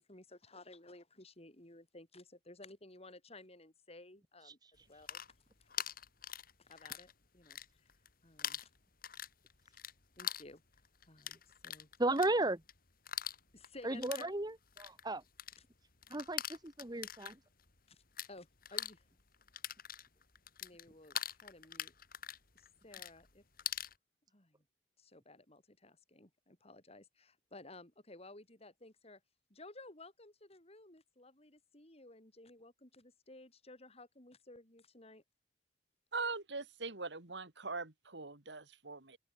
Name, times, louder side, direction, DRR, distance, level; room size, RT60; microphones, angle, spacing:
voice 1, 0.0-4.6 4.9-5.3 5.6-5.9 6.6-7.6 8.2-8.6 9.7-9.8 10.2-10.6 11.1-11.9 13.5-14.3 15.6-15.7 17.9-18.0 18.3-19.1 20.6-21.9 22.5-23.4 24.3-24.6 25.0-29.2 29.5-35.2, left 2 dB, 35° left, 5.8 m, -56 dB
sound 1, 4.8-7.1 7.4-8.1 8.4-18.3 18.6-23.9, left 10 dB, 55° left, 5.1 m, -43 dB
voice 2, 12.0-12.6 13.8-14.5 14.8-15.2 16.1-17.3, right 2 dB, 25° right, 1.7 m, -34 dB
voice 3, 36.1-39.2, right 4 dB, 75° right, 2.8 m, -41 dB
head